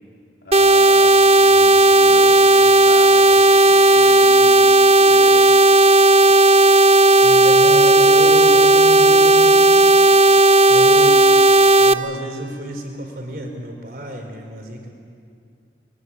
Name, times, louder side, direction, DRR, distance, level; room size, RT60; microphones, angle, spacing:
voice 1, 0.4-5.6, left 1 dB, 70° left, 0 dB, 3.9 m, -35 dB
sound 1, 0.5-11.9, right 2 dB, 35° right, 0.7 m, -12 dB
voice 2, 7.2-9.6 10.7-11.2 11.8-14.9, right 1 dB, 55° right, 3 dB, 4.3 m, -30 dB
23.0 x 22.0 x 9.9 m, 2.4 s
head